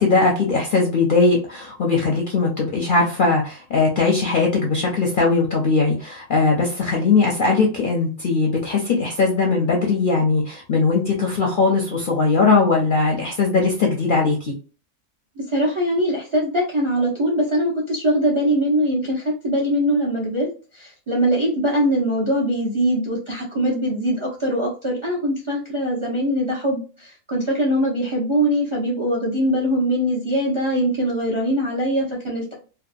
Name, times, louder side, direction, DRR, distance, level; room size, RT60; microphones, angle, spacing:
voice 1, 0.0-14.5, left 4 dB, 55° left, -1 dB, 0.6 m, -19 dB
voice 2, 15.4-32.5, equal, 35° right, -3 dB, 0.5 m, -22 dB
2.7 x 2.2 x 2.3 m, 0.36 s
omnidirectional pair, 1.4 m